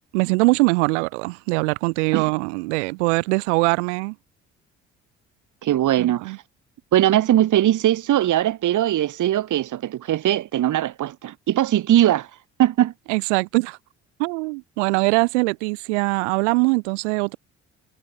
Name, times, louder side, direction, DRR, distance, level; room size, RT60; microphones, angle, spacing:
voice 1, 0.1-4.1 6.0-6.4 13.1-13.8 14.2-17.4, right 28 dB, 70° right, 4.3 m, -22 dB
voice 2, 5.6-6.4 6.9-12.3 12.6-12.9, right 13 dB, 55° right, 7.0 m, -20 dB
figure-of-eight pair, 50°, 37 cm